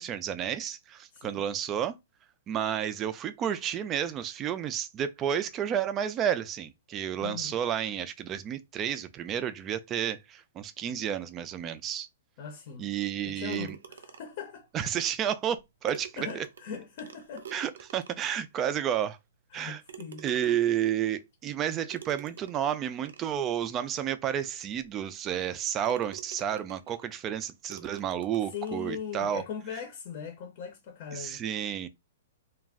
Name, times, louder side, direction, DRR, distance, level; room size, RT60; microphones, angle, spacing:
voice 1, 0.0-2.0 2.5-12.1 12.8-13.8 14.7-16.4 17.5-19.2 19.5-19.8 20.2-29.4 31.1-31.9, right 9 dB, 20° right, 0.3 m, -31 dB
voice 2, 1.1-1.5 7.2-7.6 12.4-12.9 13.2-14.7 16.2-17.5 19.5-20.2 28.5-31.4, left 6 dB, 45° left, 0.7 m, -40 dB
sound 1, 13.5-14.5 15.5-15.6 15.9-18.4 19.0-19.1 19.9-20.8 21.9-23.4 24.1-24.2 24.7-24.8 25.4-25.6 25.8-27.2 27.7-28.8, right 8 dB, 85° right, 0.5 m, -48 dB
2.3 x 2.0 x 3.4 m
hypercardioid pair, 150°, 0 cm